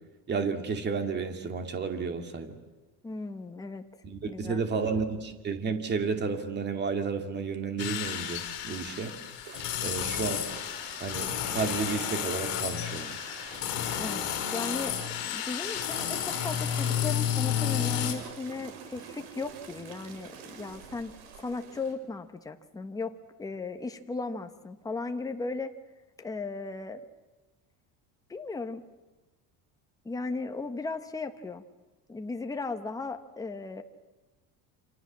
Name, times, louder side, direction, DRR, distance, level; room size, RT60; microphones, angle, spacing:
voice 1, 0.3-2.6 4.0-9.1 9.8-10.5 11.0-13.2, right 5 dB, 25° right, 6 dB, 2.4 m, -32 dB
voice 2, 3.0-3.8 4.3-4.8 14.0-15.0 15.2-23.1 23.4-25.7 26.2-27.0 28.3-28.8 30.0-31.6 32.1-33.8, left 3 dB, 10° left, 6 dB, 1.2 m, -36 dB
sound 1, 7.8-18.1, left 10 dB, 60° left, 5.6 m, -31 dB
sound 2, 9.4-21.9, right 6 dB, 75° right, 5.2 m, -47 dB
29.0 x 26.5 x 7.5 m, 1.1 s
cardioid pair, 165°, 39 cm